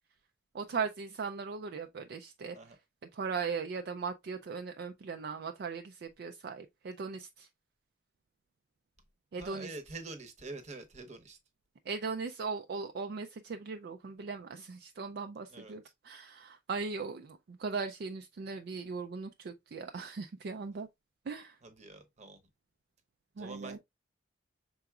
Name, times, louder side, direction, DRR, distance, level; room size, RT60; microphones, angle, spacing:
voice 1, 0.5-2.8 3.1-7.5 9.3-9.7 11.9-20.9 21.3-21.6 23.4-23.8, right 5 dB, 50° right, 0.4 m, -38 dB
voice 2, 9.4-11.4 15.5-15.8 21.6-22.4 23.4-23.8, right 3 dB, 35° right, 0.8 m, -46 dB
5.8 x 3.9 x 2.3 m
head